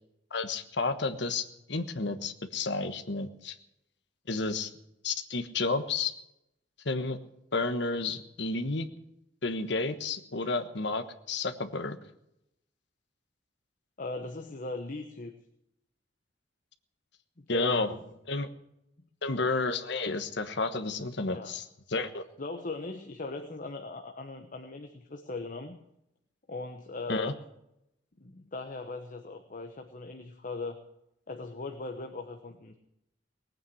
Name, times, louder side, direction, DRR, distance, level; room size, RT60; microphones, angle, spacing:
voice 1, 0.3-3.6 4.3-4.7 5.0-6.1 6.8-7.2 7.5-8.9 9.4-12.0 17.5-17.9 18.3-18.5 19.2-21.6 21.9-22.2 27.1-27.3, left 3 dB, 65° left, 9 dB, 1.3 m, -31 dB
voice 2, 14.0-15.3 17.4-18.1 21.3-21.5 22.4-25.8 26.5-27.3 28.2-30.8 31.3-32.8, left 3 dB, 45° left, 6 dB, 1.2 m, -39 dB
19.5 x 9.1 x 7.9 m, 0.82 s
head